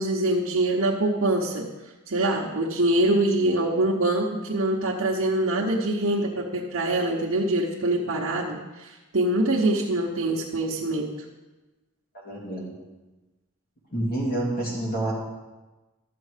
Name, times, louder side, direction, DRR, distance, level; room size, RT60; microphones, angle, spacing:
voice 1, 0.0-1.7 2.1-11.1, right 1 dB, 65° right, -4 dB, 1.0 m, -24 dB
voice 2, 12.2-12.7 13.9-15.1, right 1 dB, 45° left, -4 dB, 3.0 m, -28 dB
12.5 x 7.3 x 5.0 m, 1.1 s
head